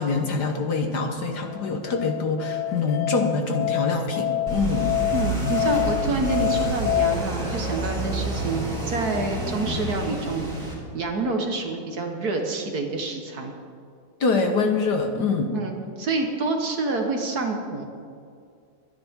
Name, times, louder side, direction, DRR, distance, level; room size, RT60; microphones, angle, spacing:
voice 1, 0.0-5.0 14.2-15.6, left 4 dB, 55° left, 4 dB, 1.4 m, -25 dB
Musical instrument, 1.5-7.1, left 14 dB, 85° left, 1.5 m, -27 dB
sound 1, 4.5-10.7, right 1 dB, 20° right, 3.9 m, -29 dB
voice 2, 5.1-13.5 15.5-17.8, right 3 dB, 50° right, 3 dB, 1.5 m, -27 dB
23.0 x 10.0 x 3.6 m, 2.3 s
omnidirectional pair, 2.3 m